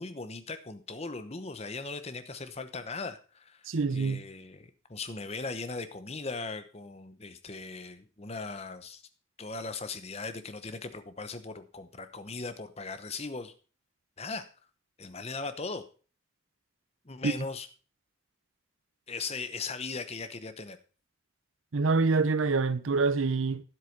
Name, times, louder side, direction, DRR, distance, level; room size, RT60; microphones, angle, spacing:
voice 1, 0.0-3.6 3.9-9.0 9.4-13.5 14.2-14.5 15.0-15.8 17.0-17.7 19.1-20.8, left 3 dB, 30° left, 0.9 m, -38 dB
voice 2, 3.7-4.2 17.2-17.3 21.7-23.6, right 4 dB, 80° right, 0.7 m, -26 dB
10.0 x 7.9 x 5.2 m
head